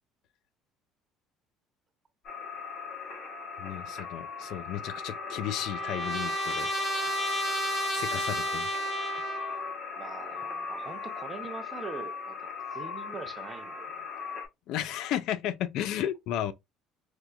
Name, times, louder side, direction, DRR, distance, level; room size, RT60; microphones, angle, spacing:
sound 1, 2.2-14.5, left 5 dB, 40° left, 1.1 m, -39 dB
voice 1, 3.6-6.7 7.9-8.7 14.7-16.5, left 11 dB, 55° left, 0.4 m, -33 dB
Trumpet, 4.8-9.7, equal, 20° left, 0.8 m, -32 dB
voice 2, 9.9-14.1 14.3-14.4, right 4 dB, 15° right, 0.6 m, -43 dB
4.3 x 2.6 x 2.3 m
cardioid pair, 175°, 0 cm